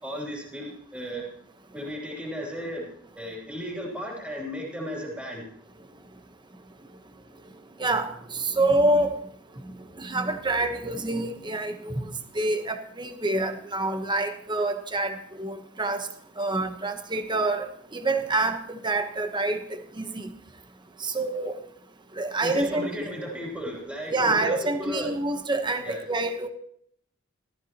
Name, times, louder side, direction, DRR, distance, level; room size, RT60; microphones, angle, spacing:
voice 1, 0.0-1.2 1.7-2.9 3.1-5.4 22.4-25.1 25.8-26.0, equal, 5° right, -2 dB, 3.0 m, -35 dB
voice 2, 8.5-9.2 10.0-12.1 12.4-16.0 16.4-17.6 17.9-20.3 21.0-21.5 22.2-22.9 24.1-26.5, right 2 dB, 20° right, 7 dB, 1.0 m, -26 dB
15.5 x 13.0 x 3.0 m, 0.67 s
head